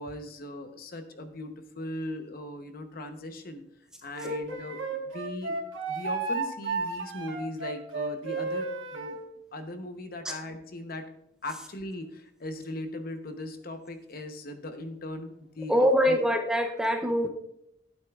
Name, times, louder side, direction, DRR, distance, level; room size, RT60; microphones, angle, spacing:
voice 1, 0.0-3.6 4.0-5.6 5.9-9.2 9.5-11.1 11.4-16.2, left 1 dB, 50° left, 7 dB, 0.9 m, -39 dB
Wind instrument woodwind instrument, 4.1-9.2, right 3 dB, 90° right, 1.3 m, -33 dB
voice 2, 4.2-4.6 10.2-10.4 15.7-17.3, equal, 5° right, 3 dB, 0.6 m, -24 dB
11.0 x 9.0 x 2.4 m, 0.78 s
head